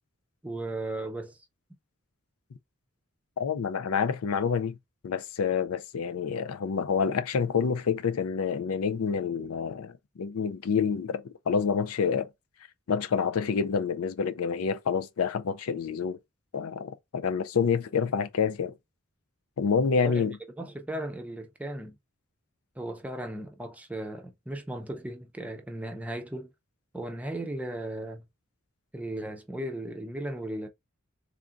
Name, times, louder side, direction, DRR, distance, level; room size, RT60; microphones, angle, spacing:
voice 1, 0.4-1.4 20.0-22.0 22.8-26.5 26.9-28.2 28.9-30.7, right 1 dB, 5° right, 0.5 m, -36 dB
voice 2, 3.4-4.8 5.0-12.3 12.9-16.2 16.5-18.7 19.6-20.4, left 6 dB, 90° left, 0.5 m, -28 dB
3.5 x 2.5 x 3.7 m
head